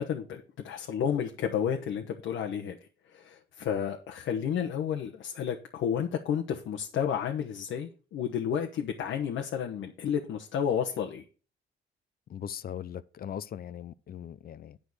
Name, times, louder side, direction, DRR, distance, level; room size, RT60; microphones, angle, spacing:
voice 1, 0.0-2.8 3.1-11.2, left 8 dB, 75° left, 1.2 m, -31 dB
voice 2, 12.3-14.8, left 9 dB, 50° left, 0.6 m, -39 dB
9.7 x 5.1 x 6.3 m
cardioid pair, 90°, 20 cm